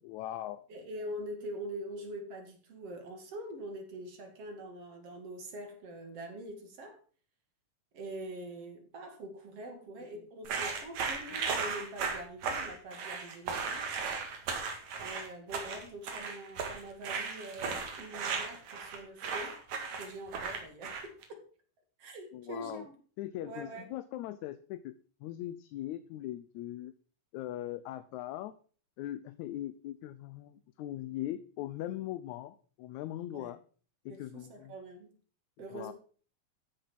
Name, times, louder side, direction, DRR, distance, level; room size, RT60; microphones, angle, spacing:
voice 1, 0.0-0.7 22.3-22.9 23.2-25.0 25.2-26.9 27.3-28.6 29.0-33.6 34.1-34.7 35.7-35.9, left 13 dB, 80° left, 13 dB, 2.0 m, -40 dB
voice 2, 0.7-7.0 7.9-13.9 15.0-19.6 19.9-21.4 22.0-22.9 23.4-23.9 33.3-33.5 34.1-35.2 35.6-35.9, right 1 dB, 55° right, 5 dB, 3.0 m, -44 dB
sound 1, 10.4-21.2, right 5 dB, 70° right, 3.2 m, -36 dB
14.0 x 6.5 x 5.9 m, 0.42 s
omnidirectional pair, 3.4 m